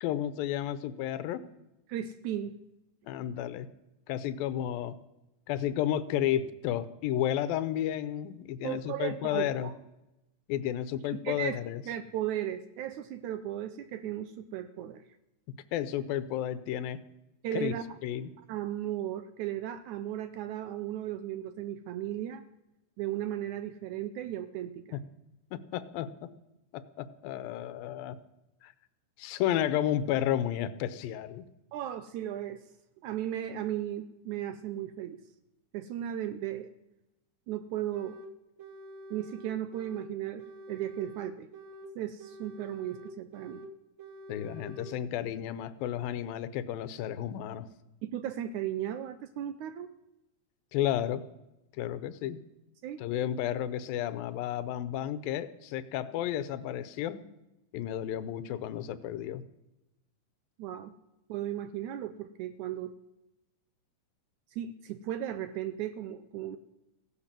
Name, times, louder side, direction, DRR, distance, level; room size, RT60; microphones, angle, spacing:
voice 1, 0.0-1.4 3.1-3.7 4.1-5.0 5.5-9.7 10.5-11.8 15.7-17.0 17.5-17.7 18.0-18.3 24.9-25.0 25.5-26.3 27.0-28.2 28.6-28.7 29.2-31.5 44.3-47.7 50.7-51.2 51.8-52.4 53.0-57.2 57.7-59.4, left 11 dB, 90° left, 15 dB, 2.6 m, -32 dB
voice 2, 1.9-2.6 8.6-9.7 11.3-11.6 11.9-15.0 17.4-17.8 18.5-22.4 23.0-25.0 31.7-32.6 33.0-35.2 35.7-36.7 37.5-38.2 39.1-41.5 42.0-43.6 48.0-49.9 52.8-53.0 60.6-60.9 61.3-62.9 64.5-66.6, right 11 dB, 75° right, 12 dB, 1.8 m, -36 dB
sound 1, 37.9-38.3 38.6-40.1 40.4-41.9 42.2-43.7 44.0-44.9, right 1 dB, 60° right, 1.3 m, -47 dB
16.0 x 11.0 x 7.4 m, 0.93 s
omnidirectional pair, 4.0 m